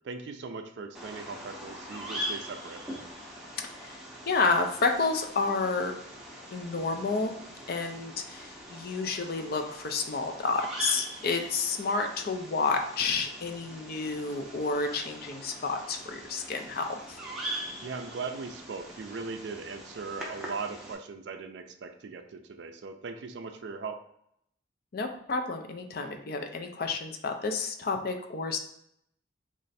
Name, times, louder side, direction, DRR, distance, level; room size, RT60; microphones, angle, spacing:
voice 1, 0.0-2.8 17.8-24.0, right 4 dB, 60° right, 7 dB, 0.4 m, -39 dB
Bird vocalization bird call bird song, 0.9-20.9, right 1 dB, 5° right, 0.6 m, -42 dB
voice 2, 3.6-4.0 4.3-5.9 6.5-7.3 7.7-17.2 24.9-28.6, left 4 dB, 50° left, 4 dB, 0.4 m, -30 dB
3.1 x 2.5 x 4.0 m, 0.74 s
head